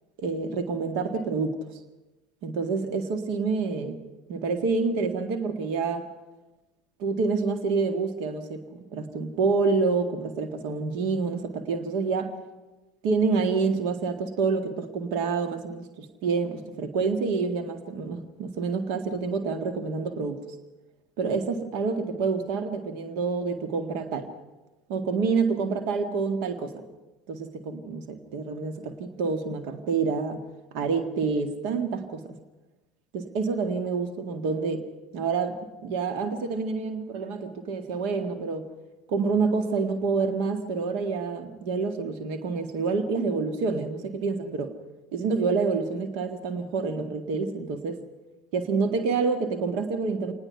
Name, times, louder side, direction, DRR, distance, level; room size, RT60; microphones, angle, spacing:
voice 1, 0.2-1.6 2.4-4.0 4.3-6.1 7.0-12.3 13.0-20.4 21.2-24.3 24.9-26.8 27.3-30.4 30.7-32.2 33.1-34.9 35.1-38.6 39.1-44.7 45.1-48.0 48.5-50.3, right 4 dB, 60° right, 7 dB, 1.9 m, -27 dB
27.5 x 19.5 x 5.8 m, 1.1 s
figure-of-eight pair, 70°, 0 cm